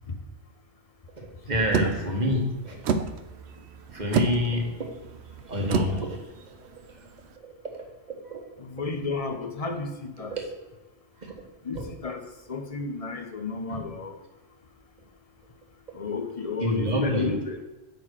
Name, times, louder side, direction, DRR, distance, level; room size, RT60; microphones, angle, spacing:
voice 1, 1.2-2.9 3.9-4.8 5.4-6.2 7.4-7.5 8.3-8.4 10.3-10.4 11.2-11.3 11.7-11.9 13.7-13.8 16.6-17.3, equal, 35° right, 1 dB, 1.6 m, -28 dB
sound 1, 1.7-7.3, right 5 dB, 65° right, 0.9 m, -31 dB
voice 2, 8.6-10.3 11.6-14.1 15.9-17.6, left 4 dB, 35° left, 6 dB, 0.8 m, -32 dB
9.0 x 3.9 x 6.4 m, 1.1 s
omnidirectional pair, 1.3 m